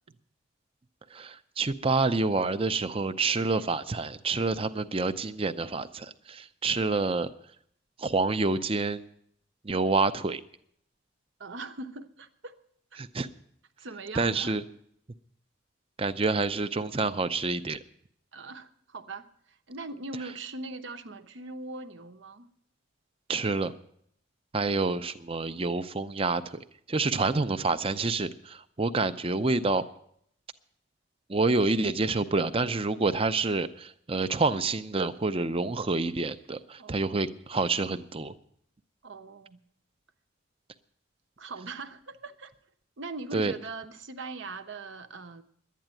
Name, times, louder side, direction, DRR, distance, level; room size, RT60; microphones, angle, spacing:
voice 1, 1.1-7.3 8.0-9.0 9.6-10.4 13.0-13.3 14.2-14.6 16.0-17.8 23.3-23.7 24.5-26.4 26.9-29.8 31.3-38.3 43.3-43.5, right 3 dB, 30° right, 12 dB, 0.6 m, -28 dB
voice 2, 11.4-12.5 12.9-13.0 13.8-14.6 18.3-22.5 27.1-27.4 36.8-37.1 39.0-39.6 41.4-42.5 43.0-45.4, right 3 dB, 70° right, 10 dB, 0.9 m, -41 dB
12.0 x 9.3 x 8.9 m, 0.68 s
head